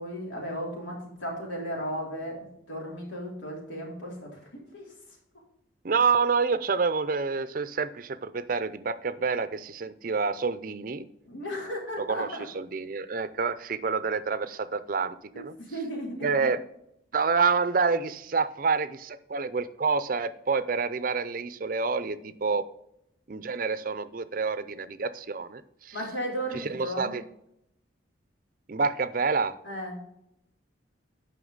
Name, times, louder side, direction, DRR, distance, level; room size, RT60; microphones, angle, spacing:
voice 1, 0.0-2.4 2.7-4.9 11.2-12.5 15.3-16.3 25.9-27.2 29.6-30.0, equal, 85° left, -2 dB, 3.2 m, -35 dB
voice 2, 5.8-11.1 12.0-12.3 12.5-15.5 16.2-16.6 17.1-22.6 23.3-26.0 26.5-27.2 28.7-29.5, right 5 dB, 45° right, 13 dB, 0.5 m, -28 dB
9.3 x 5.8 x 3.9 m, 0.78 s
head